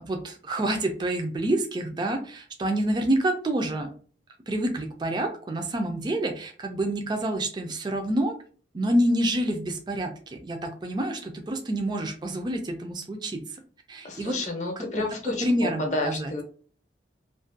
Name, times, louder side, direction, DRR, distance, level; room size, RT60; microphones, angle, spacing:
voice 1, 0.0-3.9 4.5-8.3 8.7-13.4 13.9-14.4 14.8-16.3, right 1 dB, 25° right, 4 dB, 0.3 m, -28 dB
voice 2, 14.0-16.4, left 2 dB, 40° left, 2 dB, 0.6 m, -31 dB
2.4 x 2.2 x 2.5 m, 0.42 s
head